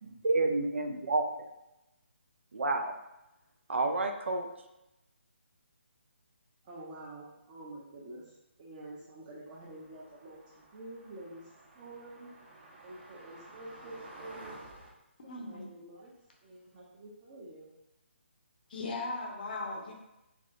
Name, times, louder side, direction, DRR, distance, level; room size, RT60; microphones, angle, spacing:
voice 1, 0.0-1.3 2.5-2.9 3.7-4.5, right 3 dB, 65° right, 5 dB, 0.5 m, -29 dB
voice 2, 6.6-12.3 12.8-14.6 15.2-16.1 16.4-17.7, right 2 dB, 25° right, -7 dB, 0.7 m, -48 dB
sound 1, 9.5-14.9, right 2 dB, 45° right, 1.0 m, -52 dB
voice 3, 15.2-15.7 18.7-19.9, left 3 dB, 45° left, 0 dB, 0.7 m, -38 dB
3.5 x 3.2 x 2.5 m, 0.94 s
figure-of-eight pair, 150°, 7 cm